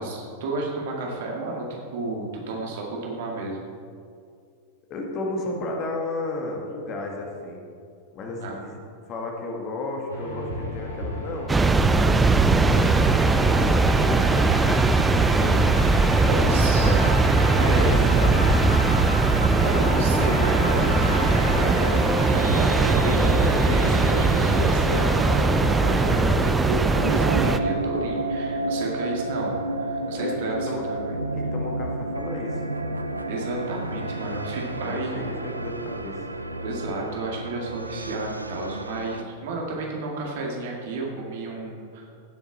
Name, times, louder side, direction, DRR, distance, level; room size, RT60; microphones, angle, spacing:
voice 1, 0.0-3.6 8.4-8.5 15.4-17.0 17.4-18.3 19.3-21.9 22.2-31.2 33.3-35.1 36.6-42.0, right 3 dB, 55° right, -1 dB, 2.2 m, -32 dB
voice 2, 4.9-7.7 8.1-8.8 9.1-14.4 16.1-18.9 30.1-30.9 31.3-32.7 34.8-36.2, left 2 dB, 35° left, 1 dB, 1.8 m, -34 dB
sound 1, 10.1-26.5, equal, 90° left, 2.9 m, -31 dB
sound 2, 11.5-27.6, right 3 dB, 10° right, 0.5 m, -20 dB
sound 3, 22.0-39.2, right 2 dB, 85° right, 0.5 m, -32 dB
16.0 x 7.3 x 4.2 m, 2.3 s
figure-of-eight pair, 90°, 0 cm